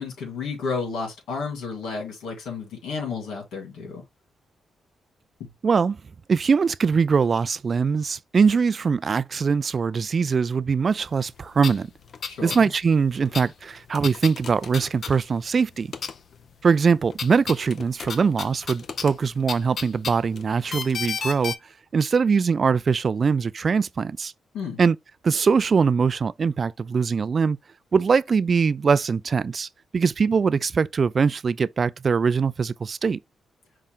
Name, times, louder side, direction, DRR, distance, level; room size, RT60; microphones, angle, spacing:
voice 1, 0.0-4.0 5.4-5.5 12.2-12.7 24.5-24.8, left 5 dB, 85° left, 2.2 m, -32 dB
voice 2, 5.6-6.0 6.3-11.9 12.4-15.9 16.6-21.5 21.9-24.3 24.8-25.0 25.2-27.6 27.9-29.7 29.9-33.2, right 5 dB, 50° right, 0.3 m, -22 dB
sound 1, 11.2-11.3 11.5-12.7 12.9-15.6 15.9-16.5 16.8-21.5, left 5 dB, 60° left, 0.6 m, -34 dB
5.6 x 2.4 x 3.6 m
cardioid pair, 65°, 0 cm